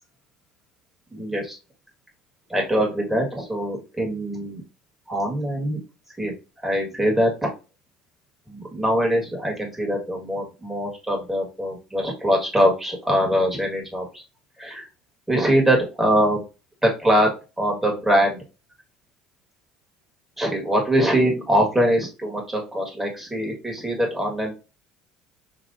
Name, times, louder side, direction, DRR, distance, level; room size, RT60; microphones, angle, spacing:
voice 1, 1.1-1.6 2.5-4.6 5.1-5.8 6.2-6.3 6.6-7.5 8.5-14.2 14.6-14.9 15.3-16.4 16.8-17.3 17.6-18.4 20.4-24.5, equal, 5° right, -1 dB, 1.5 m, -23 dB
4.1 x 2.8 x 2.6 m, 0.30 s
figure-of-eight pair, 65°, 3 cm